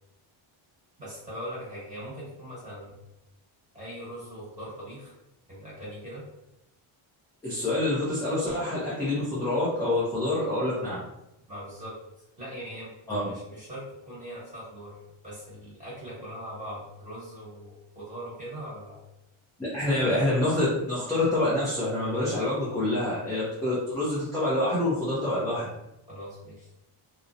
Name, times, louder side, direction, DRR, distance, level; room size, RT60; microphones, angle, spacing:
voice 1, 1.0-3.0 3.7-5.1 5.5-6.2 11.5-11.9 12.4-12.9 13.2-15.0 15.2-19.0 26.1-26.7, equal, 15° right, -9 dB, 1.4 m, -40 dB
voice 2, 7.4-11.0 13.1-13.3 19.6-25.7, left 1 dB, 5° left, -9 dB, 0.5 m, -27 dB
2.7 x 2.0 x 2.4 m, 0.91 s
cardioid pair, 145°, 49 cm